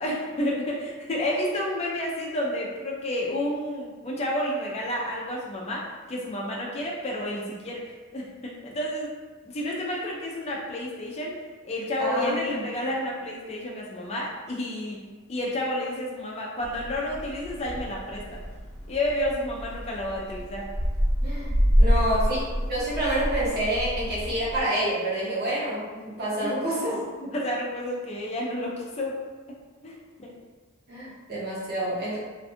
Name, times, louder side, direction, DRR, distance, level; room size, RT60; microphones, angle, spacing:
voice 1, 0.0-9.2 9.4-11.4 11.6-15.0 15.3-18.4 18.9-20.7 21.8-22.0 22.3-22.4 27.2-29.1 29.8-29.9 30.2-30.3, left 1 dB, 30° left, -3 dB, 0.4 m, -30 dB
voice 2, 12.0-12.6 21.2-22.4 22.7-27.0 30.9-32.2, right 1 dB, 50° right, -7 dB, 0.8 m, -28 dB
sound 1, 16.6-24.6, equal, 70° left, 0.6 m, -27 dB
2.5 x 2.2 x 2.6 m, 1.4 s
head